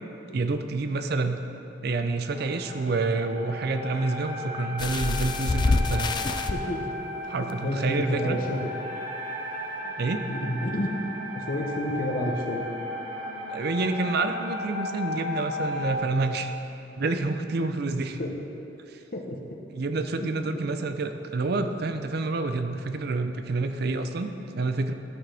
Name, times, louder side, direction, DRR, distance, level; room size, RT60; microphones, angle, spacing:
voice 1, 0.3-1.4 1.8-6.1 7.3-8.4 10.0-10.2 13.5-16.5 17.0-18.2 18.9-19.0 19.7-24.9, right 3 dB, 60° right, 8 dB, 0.5 m, -28 dB
sound 1, 2.3-15.9, left 2 dB, 80° right, 1.7 m, -35 dB
sound 2, 4.8-6.5 7.5-7.6 8.0-8.1, left 3 dB, 25° left, 0.3 m, -26 dB
voice 2, 6.5-6.9 7.6-8.7 9.8-9.9 10.3-10.9 11.3-12.6 18.2-18.3 19.1-19.4 20.2-20.3, left 1 dB, 50° left, 1 dB, 0.9 m, -30 dB
12.5 x 6.0 x 3.4 m, 2.8 s
head